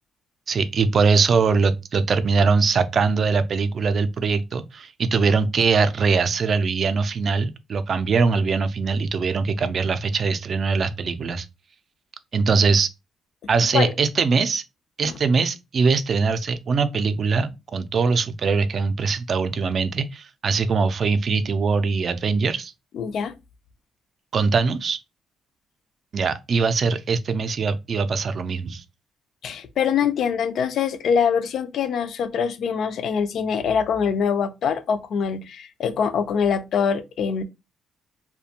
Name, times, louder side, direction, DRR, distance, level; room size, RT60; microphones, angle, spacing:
voice 1, 0.5-11.5 12.3-12.9 13.5-14.6 15.0-22.7 24.3-25.0 26.1-28.8, right 4 dB, 50° right, 0.3 m, -22 dB
voice 2, 22.9-23.3 29.4-37.4, left 7 dB, 70° left, 0.4 m, -24 dB
2.4 x 2.2 x 2.8 m
cardioid pair, 90°, 0 cm